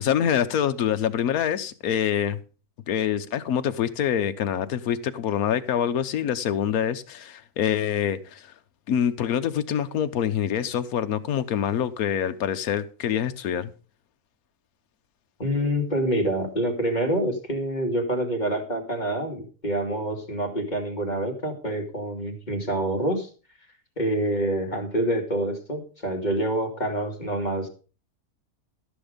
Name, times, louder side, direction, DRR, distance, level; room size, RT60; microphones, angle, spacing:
voice 1, 0.0-2.4 2.9-8.5 8.9-13.7, left 9 dB, 65° left, 1.3 m, -25 dB
voice 2, 15.4-23.3 24.0-27.7, right 1 dB, 25° left, 2.3 m, -26 dB
13.5 x 7.1 x 5.1 m
omnidirectional pair, 1.7 m